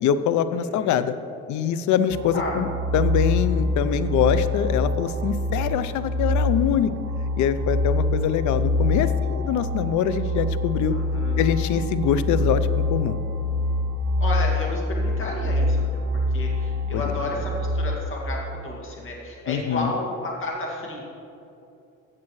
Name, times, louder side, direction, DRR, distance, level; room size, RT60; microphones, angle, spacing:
voice 1, 0.0-1.1 1.5-2.7 2.9-6.9 7.4-10.9 11.4-13.2 16.9-17.0 19.5-19.9, left 8 dB, 70° left, 13 dB, 0.6 m, -24 dB
voice 2, 0.5-1.1 2.3-2.6 10.9-11.4 14.2-21.0, left 2 dB, 40° left, -2 dB, 2.1 m, -32 dB
sound 1, 2.1-18.0, left 2 dB, 75° right, 2.0 m, -25 dB
15.0 x 7.5 x 3.1 m, 2.7 s
cardioid pair, 110°, 30 cm